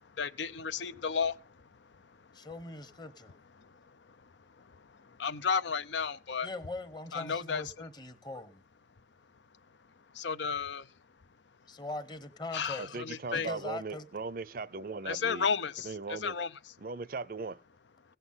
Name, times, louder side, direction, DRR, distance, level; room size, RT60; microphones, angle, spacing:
voice 1, 0.2-1.4 3.6-3.7 5.0-6.5 7.1-7.6 10.1-10.9 12.5-13.5 15.1-16.5, left 6 dB, 75° left, 0.7 m, -33 dB
voice 2, 2.3-3.4 6.4-8.6 11.7-13.0 13.3-14.1, left 2 dB, 25° left, 1.0 m, -41 dB
voice 3, 12.8-15.5 15.8-16.3 16.8-17.6, right 4 dB, 50° right, 0.5 m, -38 dB
17.0 x 8.0 x 5.6 m
head